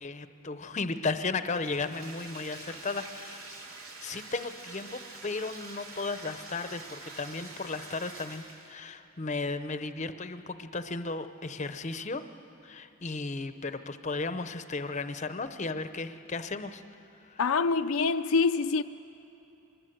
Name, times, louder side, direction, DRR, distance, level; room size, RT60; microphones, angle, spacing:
voice 1, 0.0-3.6 4.0-12.2 12.6-16.8 17.2-17.4, left 3 dB, 35° left, 10 dB, 0.7 m, -35 dB
Bathtub (filling or washing), 1.6-8.8, right 3 dB, 80° right, 2.9 m, -46 dB
voice 2, 17.4-18.8, left 4 dB, 80° left, 8 dB, 0.5 m, -25 dB
24.0 x 20.5 x 8.0 m, 3.0 s
head